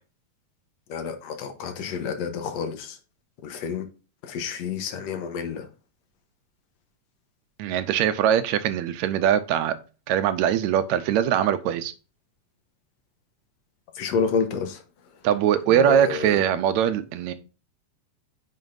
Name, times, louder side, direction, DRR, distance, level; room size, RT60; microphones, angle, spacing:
voice 1, 0.9-3.0 3.4-3.9 4.2-5.7 14.0-14.8 15.7-16.4, left 6 dB, 70° left, 2.1 m, -29 dB
voice 2, 7.6-9.8 10.1-11.9 15.2-17.3, right 10 dB, 80° right, 2.0 m, -22 dB
9.3 x 6.0 x 2.6 m
omnidirectional pair, 3.3 m